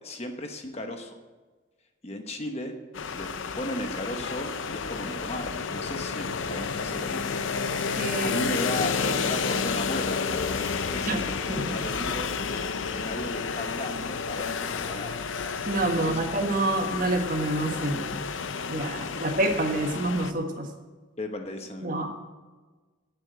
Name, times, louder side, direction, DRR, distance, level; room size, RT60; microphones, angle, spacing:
voice 1, 0.0-1.2 2.0-2.8 3.1-3.3 3.6-7.5 8.0-12.3 12.9-15.2 15.9-16.3 19.0-19.2 21.2-22.0, left 1 dB, 35° left, 5 dB, 1.0 m, -36 dB
sound 1, 2.9-20.3, left 5 dB, 85° left, 0.6 m, -31 dB
voice 2, 8.0-8.4 11.1-11.2 11.5-11.6 15.6-18.2 18.7-20.7 21.8-22.1, right 2 dB, 45° right, 3 dB, 1.5 m, -27 dB
9.0 x 7.5 x 9.0 m, 1.3 s
head